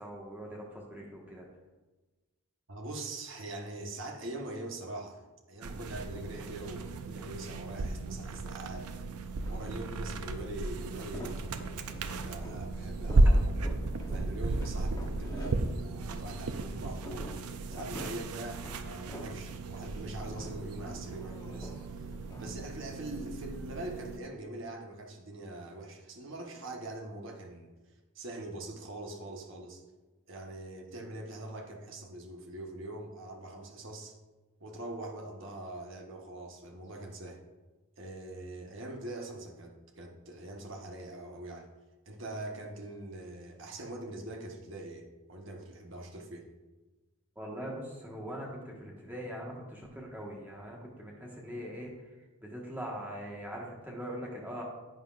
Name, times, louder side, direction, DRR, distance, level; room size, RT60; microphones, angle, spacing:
voice 1, 0.0-1.5 47.3-51.9 52.4-54.6, equal, 10° right, -2 dB, 1.4 m, -41 dB
voice 2, 2.7-8.9 9.5-13.5 14.1-17.3 17.7-22.1 22.4-27.7 28.1-29.8 30.3-34.1 34.6-37.4 38.0-41.7 42.1-46.5, right 1 dB, 55° right, 1 dB, 1.2 m, -43 dB
sound 1, 5.6-24.2, right 2 dB, 80° right, 0.6 m, -33 dB
sound 2, 9.4-10.2 10.6-16.6 16.9-19.5 19.8-22.5, equal, 15° left, 0.9 m, -47 dB
10.5 x 8.1 x 2.5 m, 1.2 s
head